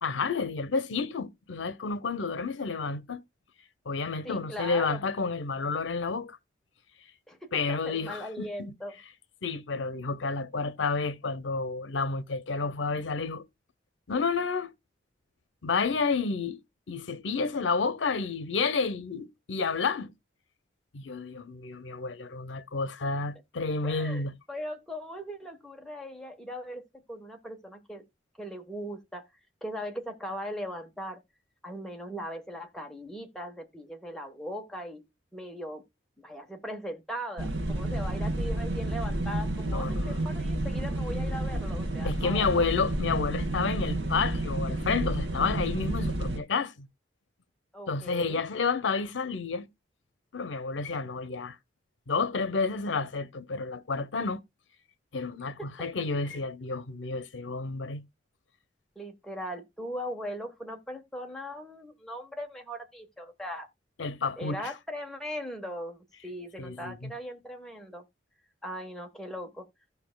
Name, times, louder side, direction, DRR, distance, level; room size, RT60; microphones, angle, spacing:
voice 1, 0.0-3.2 3.9-6.4 7.5-8.7 9.4-13.4 14.1-14.7 15.6-16.6 16.9-20.1 20.9-24.3 39.7-40.2 42.0-46.9 47.9-49.7 50.3-51.6 52.1-54.4 55.1-58.0 64.0-64.7 66.6-67.1, left 4 dB, 90° left, 0.7 m, -30 dB
voice 2, 4.2-5.0 7.3-9.0 23.8-28.0 28.4-29.3 29.6-31.2 31.6-35.1 35.3-35.8 36.2-42.7 47.7-48.4 55.6-56.4 58.9-63.7 64.4-68.0 68.6-69.7, equal, 5° left, 1.2 m, -39 dB
sound 1, 37.4-46.4, right 1 dB, 80° right, 1.6 m, -30 dB
15.5 x 5.4 x 2.2 m
head